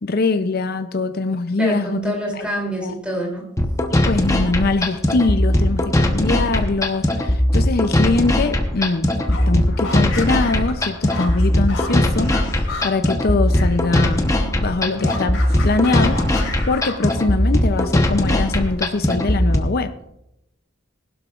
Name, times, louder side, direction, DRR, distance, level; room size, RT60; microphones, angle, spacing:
voice 1, 0.0-2.5 2.8-3.0 3.9-19.9, left 3 dB, 50° left, 9 dB, 0.6 m, -23 dB
voice 2, 1.6-3.5, right 1 dB, 5° right, -2 dB, 3.0 m, -26 dB
sound 1, 3.6-19.6, left 1 dB, 15° left, 1.0 m, -19 dB
sound 2, 9.1-13.8 14.1-17.4, left 3 dB, 80° left, 4.1 m, -33 dB
19.5 x 12.0 x 2.5 m, 0.83 s
head